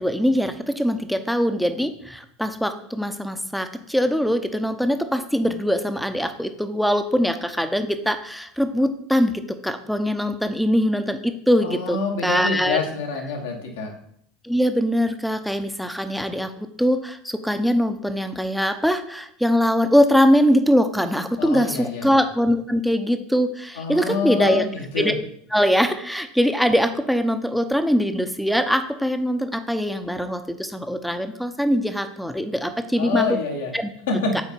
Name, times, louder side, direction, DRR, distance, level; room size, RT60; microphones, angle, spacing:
voice 1, 0.0-12.8 14.4-24.7 25.0-25.1 25.5-33.3 33.7-33.9, equal, ahead, 9 dB, 0.6 m, -22 dB
voice 2, 11.6-14.0 21.4-22.1 23.8-25.2 33.0-33.7 34.1-34.4, left 4 dB, 70° left, 1 dB, 1.4 m, -26 dB
6.6 x 4.4 x 4.4 m, 0.68 s
figure-of-eight pair, 75°, 0 cm